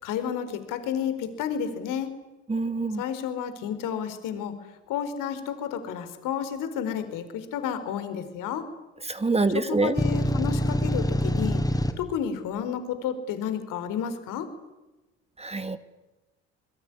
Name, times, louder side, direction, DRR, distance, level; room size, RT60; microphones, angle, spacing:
voice 1, 0.0-2.1 2.9-4.5 4.9-8.7 9.5-11.6 12.0-14.5, left 8 dB, 65° left, 10 dB, 4.5 m, -31 dB
voice 2, 2.5-3.0 9.1-9.9 15.4-15.8, right 3 dB, 20° right, 10 dB, 2.3 m, -25 dB
sound 1, 10.0-11.9, equal, 10° left, 5.0 m, -25 dB
27.0 x 22.0 x 9.8 m, 1.0 s
hypercardioid pair, 65°, 34 cm